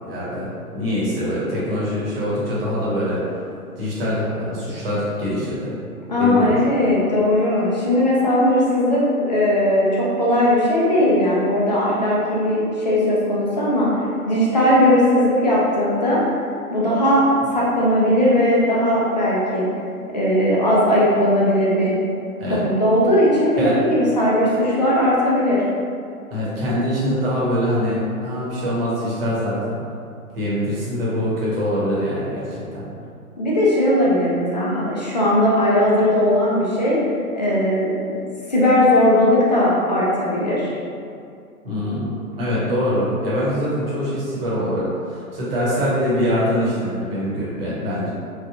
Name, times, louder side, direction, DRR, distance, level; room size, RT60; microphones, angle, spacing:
voice 1, 0.0-3.2 3.8-5.8 6.2-6.6 22.4-22.6 23.6-23.8 26.3-29.8 30.3-32.8 41.6-42.1 42.3-48.1, equal, 40° right, -7 dB, 1.0 m, -23 dB
voice 2, 6.1-9.0 9.3-13.9 14.3-16.2 16.7-17.2 17.5-19.7 20.1-22.0 22.5-25.6 33.4-37.0 37.3-37.9 38.5-40.7, left 1 dB, 30° left, -6 dB, 0.4 m, -18 dB
3.2 x 2.1 x 2.3 m, 2.4 s
figure-of-eight pair, 125°, 44 cm